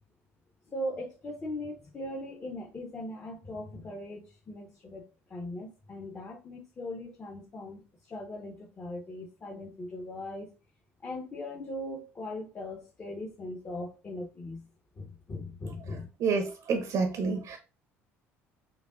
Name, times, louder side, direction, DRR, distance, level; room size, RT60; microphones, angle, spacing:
voice 1, 0.7-10.5 11.0-14.7 15.0-16.1, left 1 dB, 35° left, 1.3 m, -39 dB
voice 2, 16.2-17.6, right 4 dB, 60° right, 1.1 m, -28 dB
7.2 x 2.7 x 2.6 m
hypercardioid pair, 60°, 7 cm